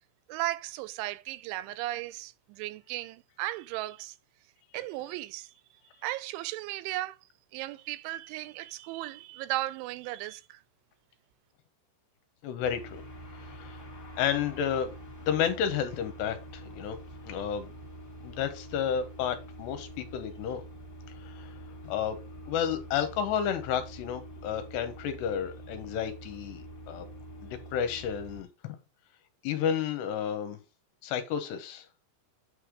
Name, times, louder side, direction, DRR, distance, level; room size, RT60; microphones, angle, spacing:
voice 1, 0.3-4.2 4.7-5.5 6.0-7.2 7.5-10.6, right 16 dB, 85° right, 2.9 m, -36 dB
voice 2, 12.4-13.0 13.4-13.8 14.2-14.9 15.3-17.0 17.2-17.7 18.2-20.6 21.2-21.5 21.9-22.2 22.5-27.1 27.4-28.8 29.4-30.6 31.0-31.9, left 8 dB, 75° left, 2.7 m, -31 dB
sound 1, 12.6-28.4, right 1 dB, 10° left, 1.0 m, -46 dB
9.0 x 3.2 x 5.0 m
omnidirectional pair, 5.3 m